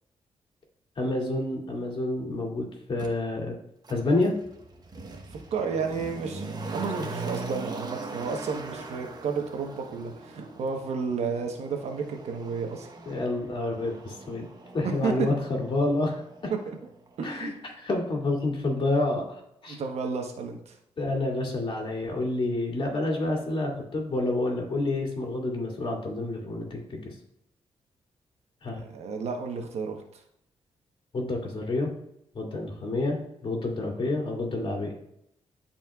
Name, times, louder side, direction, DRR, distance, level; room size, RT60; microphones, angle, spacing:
voice 1, 1.0-3.6 3.9-4.4 13.1-16.5 17.2-19.8 21.0-27.1 28.6-28.8 31.1-31.9 32.3-34.9, left 2 dB, 50° left, 0 dB, 2.3 m, -29 dB
Motor vehicle (road), 3.0-3.1 3.8-16.8 17.1-17.2, right 3 dB, 40° right, 1.1 m, -40 dB
voice 2, 5.5-6.4 6.7-12.9 14.8-15.1 16.7-16.8 17.2-17.5 19.7-20.7 28.8-30.0, right 5 dB, 80° right, 4 dB, 1.1 m, -32 dB
12.0 x 4.3 x 2.4 m, 0.77 s
cardioid pair, 80°, 11 cm